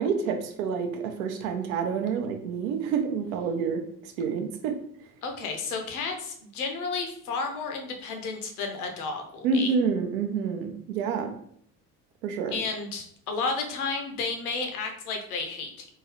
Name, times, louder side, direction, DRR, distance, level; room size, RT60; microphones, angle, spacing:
voice 1, 0.0-4.7 9.4-11.3 12.2-12.6, right 5 dB, 65° right, 5 dB, 0.6 m, -28 dB
voice 2, 5.2-9.7 12.5-15.9, left 4 dB, 70° left, 4 dB, 0.8 m, -32 dB
3.8 x 2.7 x 3.0 m, 0.66 s
figure-of-eight pair, 60°, 46 cm